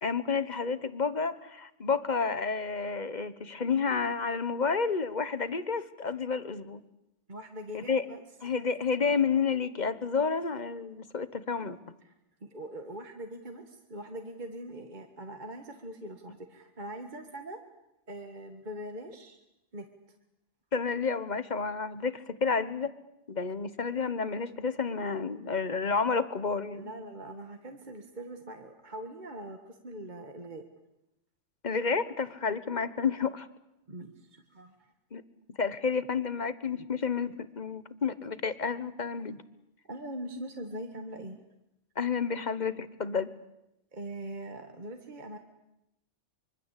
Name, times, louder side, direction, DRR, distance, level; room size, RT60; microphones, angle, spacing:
voice 1, 0.0-6.8 7.7-8.0 8.4-11.8 20.7-22.9 23.3-26.9 31.6-33.5 35.1-35.2 35.5-39.4 42.0-43.3, left 5 dB, 40° left, 14 dB, 1.3 m, -30 dB
voice 2, 7.3-8.2 12.0-12.1 12.4-17.6 18.1-19.4 19.7-19.9 26.7-30.6 33.9-34.9 39.9-41.4 43.9-45.4, right 1 dB, 40° right, 5 dB, 1.9 m, -42 dB
25.0 x 24.5 x 8.4 m, 0.88 s
omnidirectional pair, 1.2 m